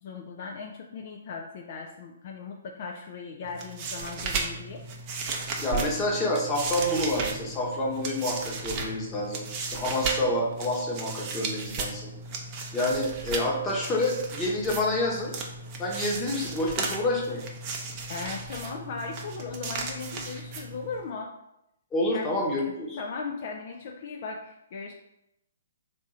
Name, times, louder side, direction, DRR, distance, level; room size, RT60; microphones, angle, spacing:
voice 1, 0.0-4.8 18.1-21.4 22.1-24.9, left 4 dB, 50° left, 2 dB, 0.4 m, -38 dB
sound 1, 3.4-21.0, right 4 dB, 35° right, 0.6 m, -35 dB
voice 2, 5.6-12.1 12.7-15.3 15.8-17.4 21.9-23.0, left 1 dB, 15° left, -3 dB, 1.1 m, -28 dB
3.5 x 2.6 x 4.2 m, 0.83 s
figure-of-eight pair, 130°, 0 cm